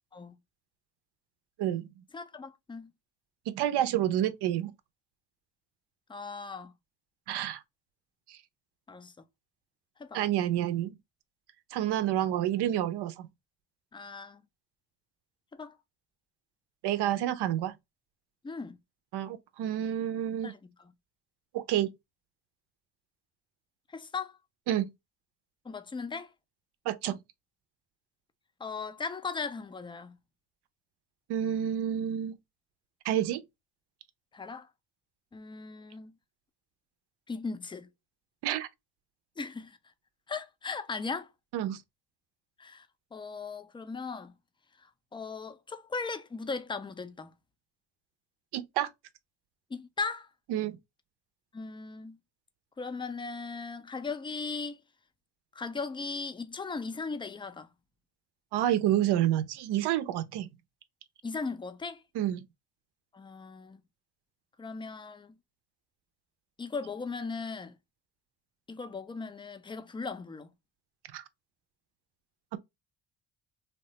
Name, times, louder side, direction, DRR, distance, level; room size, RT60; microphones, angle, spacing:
voice 1, 2.1-2.9 6.1-6.7 8.9-9.1 10.0-10.2 13.9-14.4 15.5-15.8 18.4-18.8 20.4-20.6 23.9-24.4 25.7-26.3 28.6-30.2 34.3-34.7 35.3-36.1 37.3-37.9 39.4-39.8 40.3-41.3 42.6-42.9 43.1-44.3 45.1-47.3 49.7-50.3 51.5-52.2 52.8-54.8 55.6-57.7 61.2-62.0 63.1-63.8 64.6-65.4 66.6-67.8 68.7-70.5, left 4 dB, 10° left, 0.3 m, -38 dB
voice 2, 3.5-4.7 7.3-7.6 8.3-8.4 10.1-10.9 11.7-13.3 16.8-17.7 19.1-20.5 21.5-21.9 24.7-24.9 26.9-27.2 31.3-32.4 33.0-33.4 38.4-38.7 41.5-41.8 48.5-48.9 50.5-50.8 58.5-60.5 62.1-62.4 71.1-71.2, right 11 dB, 65° right, 0.6 m, -29 dB
3.1 x 2.1 x 2.8 m
supercardioid pair, 75°, 44 cm